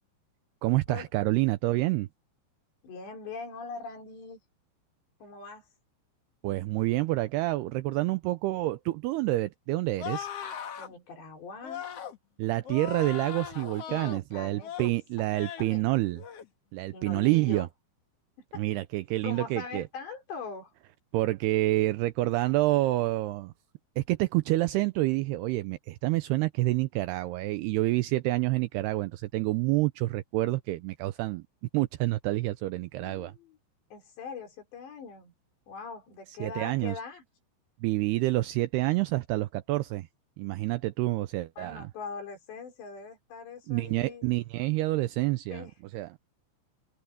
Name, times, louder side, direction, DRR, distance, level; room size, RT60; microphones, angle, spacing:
voice 1, 0.6-2.1 6.4-10.3 12.4-16.2 16.7-17.7 18.5-19.8 21.1-23.5 24.0-31.4 31.7-33.3 36.4-36.9 37.8-40.1 40.4-41.9 43.7-45.7 45.9-46.1, right 18 dB, 85° right, 2.3 m, -28 dB
voice 2, 2.8-4.4 5.2-5.7 10.8-11.8 13.9-14.8 15.6-15.9 16.9-17.7 18.5-18.6 19.2-20.7 33.0-33.6 33.9-35.3 35.7-37.2 41.6-44.2 45.5-45.7, left 5 dB, 65° left, 6.8 m, -42 dB
sound 1, 10.0-10.9 11.6-12.2 12.6-14.2 14.6-14.9 15.3-15.7 16.1-16.5, left 9 dB, 85° left, 1.3 m, -39 dB
open air
omnidirectional pair, 5.5 m